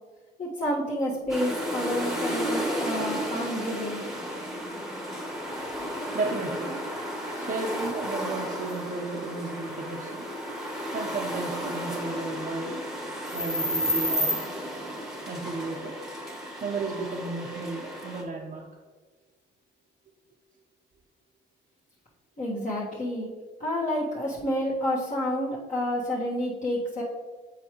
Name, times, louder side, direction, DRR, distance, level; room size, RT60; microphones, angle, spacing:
voice 1, 0.4-4.0 22.4-23.3 23.6-27.0, equal, 40° left, -8 dB, 1.5 m, -29 dB
sound 1, 1.3-18.2, equal, ahead, 1.2 m, -32 dB
voice 2, 6.1-6.7 7.4-10.2 10.9-12.8 13.3-14.5 15.3-16.0 16.6-18.7, right 3 dB, 45° right, -3 dB, 0.8 m, -33 dB
7.7 x 4.7 x 3.0 m, 1.4 s
cardioid pair, 90°, 20 cm